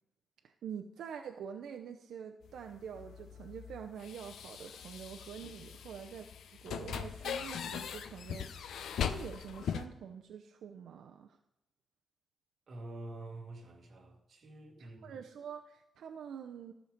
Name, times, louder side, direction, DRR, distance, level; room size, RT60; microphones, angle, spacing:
voice 1, 0.4-6.3 6.6-11.4 14.8-16.7, right 7 dB, 75° right, 0.6 m, -46 dB
sound 1, 2.4-9.9, left 8 dB, 75° left, 0.6 m, -40 dB
voice 2, 12.7-15.2, right 2 dB, 40° right, 1.8 m, -47 dB
14.0 x 6.5 x 5.1 m
wide cardioid pair, 165°, 0 cm